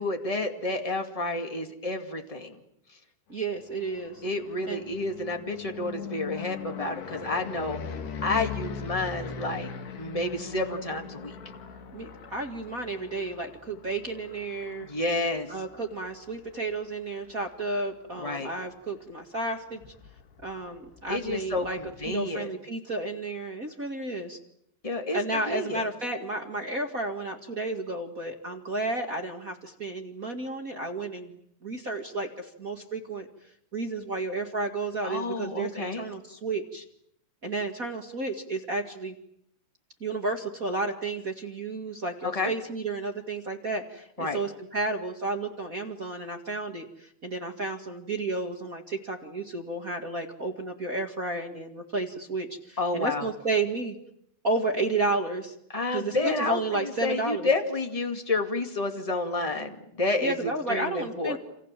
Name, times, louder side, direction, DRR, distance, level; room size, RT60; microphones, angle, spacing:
voice 1, 0.0-2.6 4.2-7.8 8.2-11.3 14.8-15.5 18.2-18.5 21.1-22.5 24.8-25.8 35.0-36.0 42.2-42.5 44.2-44.4 52.8-53.3 55.7-61.4, left 2 dB, 40° left, 4 dB, 0.5 m, -30 dB
voice 2, 3.3-4.2 4.6-4.9 11.9-14.9 15.5-19.8 20.4-24.4 25.1-33.3 33.7-36.8 37.4-39.1 40.0-54.0 54.4-55.5 55.9-57.5 60.2-61.4, right 2 dB, 40° right, 3 dB, 1.3 m, -32 dB
sound 1, 3.6-17.5 18.0-18.5 18.7-18.8 19.1-22.2, left 6 dB, 75° left, 4.6 m, -41 dB
28.5 x 28.0 x 7.5 m, 0.74 s
omnidirectional pair, 4.8 m